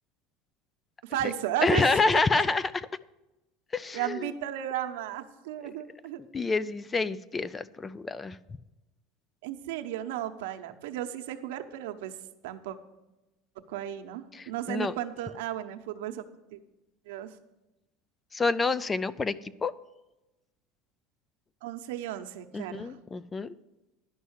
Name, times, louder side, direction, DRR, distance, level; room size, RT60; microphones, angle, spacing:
voice 1, 1.0-2.2 3.9-6.2 9.4-12.1 12.4-12.8 13.7-16.2 16.5-16.6 17.1-17.3 21.6-23.0, right 12 dB, 85° right, 7 dB, 0.9 m, -34 dB
voice 2, 1.6-2.9 3.7-4.3 6.2-8.4 14.3-14.9 18.3-19.7 22.5-23.5, left 3 dB, 15° left, 17 dB, 0.3 m, -28 dB
11.0 x 5.5 x 8.0 m, 1.0 s
supercardioid pair, 140°, 0 cm